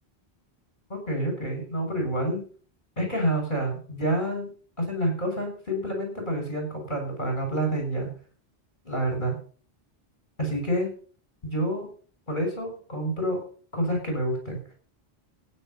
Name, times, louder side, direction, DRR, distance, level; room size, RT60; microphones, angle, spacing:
voice 1, 0.9-2.4 3.0-8.1 8.8-9.4 10.4-10.9 11.4-11.9 12.3-13.4 13.7-14.6, right 1 dB, 50° left, 2 dB, 6.6 m, -28 dB
15.5 x 10.0 x 5.6 m, 0.42 s
omnidirectional pair, 1.1 m